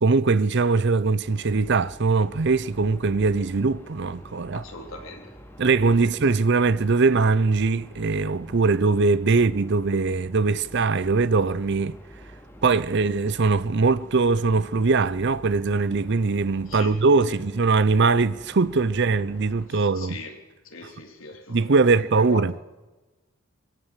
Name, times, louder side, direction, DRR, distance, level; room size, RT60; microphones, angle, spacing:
voice 1, 0.0-4.6 5.6-12.0 12.6-20.2 20.8-20.9 21.5-22.5, right 4 dB, 55° right, 0.6 m, -21 dB
sound 1, 1.2-19.7, equal, 10° left, 2.9 m, -46 dB
voice 2, 4.5-5.4 6.0-6.1 16.7-16.9 17.3-17.4 19.7-20.4 20.6-21.6 22.2-22.6, left 2 dB, 65° left, 3.1 m, -40 dB
22.0 x 17.0 x 7.4 m
head